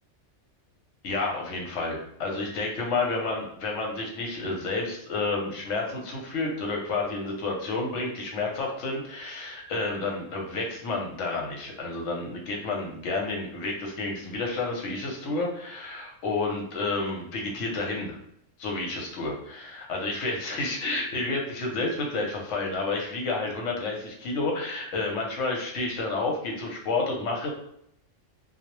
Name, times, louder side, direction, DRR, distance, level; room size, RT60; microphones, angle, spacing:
voice 1, 1.0-18.2 18.6-27.5, left 3 dB, 80° left, 0 dB, 1.0 m, -30 dB
2.3 x 2.0 x 2.9 m, 0.71 s
omnidirectional pair, 1.3 m